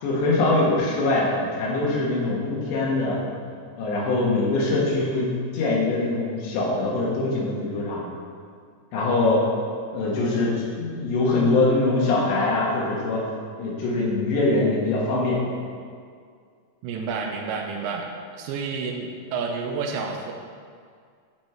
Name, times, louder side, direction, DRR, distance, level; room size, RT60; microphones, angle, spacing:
voice 1, 0.0-3.2 3.8-5.3 5.5-8.0 8.9-9.4 9.9-13.2 13.6-15.4, left 2 dB, 75° left, -4 dB, 3.6 m, -23 dB
voice 2, 16.8-20.3, right 4 dB, 80° right, 2 dB, 2.8 m, -30 dB
11.5 x 5.3 x 4.5 m, 2.1 s
omnidirectional pair, 5.3 m